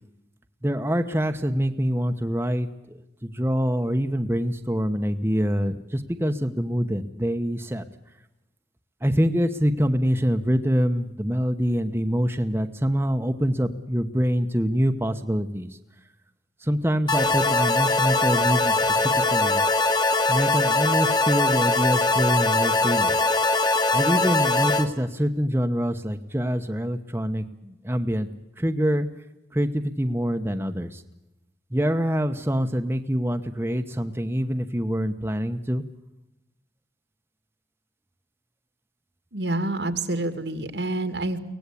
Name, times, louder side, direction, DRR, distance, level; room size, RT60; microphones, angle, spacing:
voice 1, 0.6-2.7 3.2-7.8 9.0-15.7 16.6-19.6 20.3-23.2 23.9-28.3 28.6-29.1 29.5-31.0 31.7-35.8, equal, 15° right, 6 dB, 1.0 m, -25 dB
sound 1, 17.1-24.9, left 2 dB, 25° left, 1.6 m, -21 dB
voice 2, 39.3-41.4, right 2 dB, 80° right, 9 dB, 2.4 m, -27 dB
24.0 x 18.0 x 8.5 m, 0.94 s
head